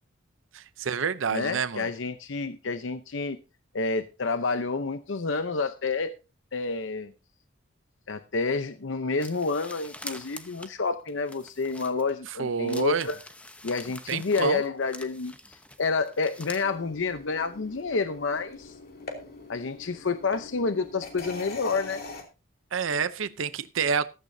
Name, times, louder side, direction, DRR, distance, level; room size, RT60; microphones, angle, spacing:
voice 1, 0.5-1.8 12.4-13.1 14.1-14.6 22.7-24.1, right 6 dB, 80° right, 0.6 m, -28 dB
voice 2, 1.3-3.4 3.7-6.1 6.5-7.1 8.1-13.2 13.6-18.8 19.5-22.0, left 4 dB, 70° left, 0.7 m, -29 dB
sound 1, 9.2-12.3 12.7-16.6, left 1 dB, 5° left, 0.9 m, -45 dB
sound 2, 16.6-22.2, left 3 dB, 50° left, 2.9 m, -43 dB
15.0 x 13.5 x 2.7 m
head